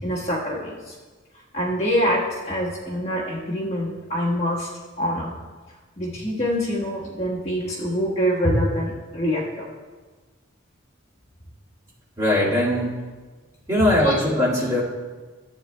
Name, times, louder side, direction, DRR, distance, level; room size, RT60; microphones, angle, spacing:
voice 1, 0.0-0.9 1.5-4.7 5.0-5.3 6.0-9.7 14.0-14.1, equal, 30° left, -5 dB, 1.4 m, -25 dB
voice 2, 12.2-12.9 13.7-14.8, left 1 dB, 20° right, -7 dB, 1.9 m, -20 dB
13.5 x 8.6 x 2.2 m, 1.4 s
head